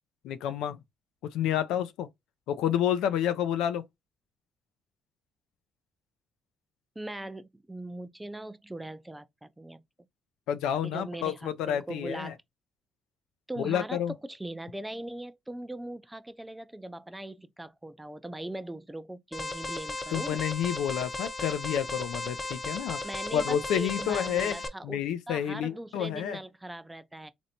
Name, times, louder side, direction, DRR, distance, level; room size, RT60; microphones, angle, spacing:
voice 1, 0.2-0.8 1.2-2.1 2.5-3.9 10.5-12.3 13.6-14.1 20.1-23.0 23.3-24.6 24.8-26.4, left 10 dB, 90° left, 0.4 m, -29 dB
voice 2, 7.0-9.8 10.8-12.4 13.5-20.4 23.0-27.3, right 1 dB, 10° right, 0.4 m, -40 dB
Alarm, 19.3-24.7, left 3 dB, 25° left, 0.7 m, -36 dB
3.2 x 2.6 x 2.7 m
cardioid pair, 95°, 0 cm